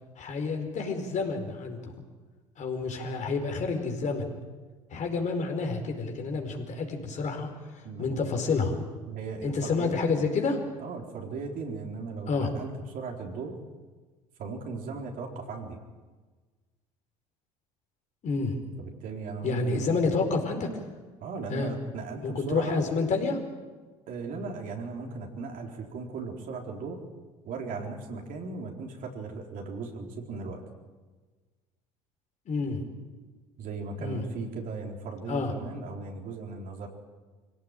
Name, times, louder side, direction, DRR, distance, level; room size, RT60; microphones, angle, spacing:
voice 1, 0.2-1.9 2.6-4.3 4.9-7.5 8.0-8.8 9.4-10.6 12.3-12.5 18.2-18.6 19.4-20.7 21.5-21.7 22.2-23.4 32.5-32.8 34.0-34.3 35.3-35.5, left 4 dB, 45° left, 3 dB, 4.8 m, -29 dB
voice 2, 7.8-8.3 9.1-10.2 10.8-13.6 14.4-15.8 18.8-19.9 21.2-22.8 24.1-27.0 27.4-30.6 33.6-36.9, right 4 dB, 55° right, 2 dB, 4.1 m, -37 dB
24.5 x 17.5 x 9.1 m, 1.3 s
hypercardioid pair, 70°, 16 cm